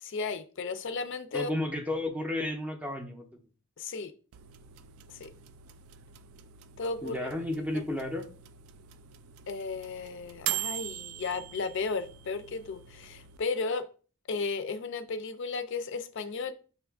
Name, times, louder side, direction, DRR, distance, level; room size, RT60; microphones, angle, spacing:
voice 1, 0.0-1.5 3.8-4.1 5.1-5.3 6.8-7.3 7.7-7.8 9.5-13.8 14.3-16.5, left 4 dB, 55° left, 0.4 m, -34 dB
voice 2, 1.3-3.3 7.0-8.3, left 1 dB, 5° right, 0.5 m, -32 dB
sound 1, 4.3-13.4, right 12 dB, 75° right, 0.3 m, -42 dB
5.5 x 2.3 x 3.4 m
head